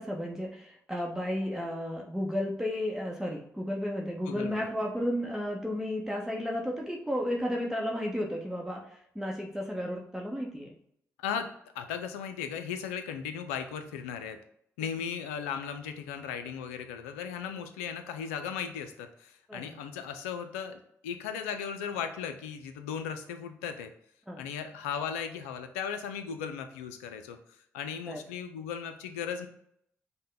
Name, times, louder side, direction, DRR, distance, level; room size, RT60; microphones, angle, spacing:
voice 1, 0.0-10.7 19.5-19.7 24.3-24.4 28.1-28.2, equal, 5° right, -1 dB, 0.8 m, -33 dB
voice 2, 4.3-4.7 11.2-11.5 11.7-14.4 14.8-23.9 24.4-27.4 27.7-29.5, left 7 dB, 90° left, 8 dB, 0.4 m, -37 dB
5.4 x 2.1 x 3.8 m, 0.70 s
hypercardioid pair, 45°, 7 cm